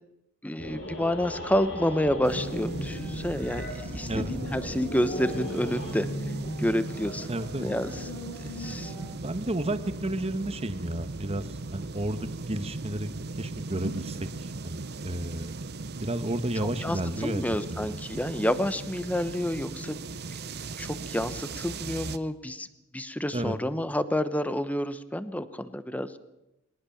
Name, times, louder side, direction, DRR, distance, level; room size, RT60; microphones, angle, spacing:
voice 1, 0.4-3.7 3.9-6.1 6.6-7.3 7.6-8.1 8.6-8.9 16.8-20.0 20.8-22.7 22.9-26.2, equal, 5° left, 13 dB, 0.9 m, -29 dB
sound 1, 0.6-5.9, left 1 dB, 65° left, 7.3 m, -38 dB
sound 2, 1.9-9.1, equal, 40° left, 4.7 m, -38 dB
sound 3, 2.2-22.2, right 3 dB, 50° right, 0.9 m, -38 dB
voice 2, 7.3-7.7 9.2-13.1 13.4-15.6 16.0-17.4 17.7-18.0 23.3-23.6, right 1 dB, 30° right, 11 dB, 1.3 m, -32 dB
21.0 x 19.0 x 7.2 m, 0.93 s
head